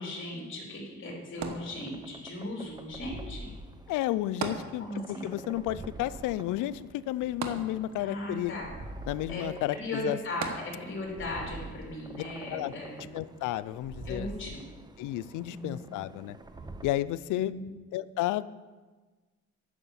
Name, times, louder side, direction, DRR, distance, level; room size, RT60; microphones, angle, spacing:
voice 1, 0.0-3.5 4.8-5.3 8.0-8.7 9.3-9.4 9.8-13.0 14.1-14.6 15.5-15.9 17.3-17.7, left 1 dB, 40° left, -2 dB, 3.6 m, -37 dB
sound 1, 1.4-16.9, right 2 dB, 15° right, 0.7 m, -46 dB
sound 2, 1.4-2.3 4.4-5.3 5.6-5.7 7.4-8.2 10.4-11.1 11.8-11.9, right 6 dB, 65° right, 1.2 m, -37 dB
voice 2, 3.9-8.5 9.1-10.2 12.5-14.3 15.0-16.4 16.8-17.5 17.9-18.4, left 15 dB, 85° left, 17 dB, 0.5 m, -32 dB
9.7 x 6.3 x 7.0 m, 1.3 s
cardioid pair, 90°, 30 cm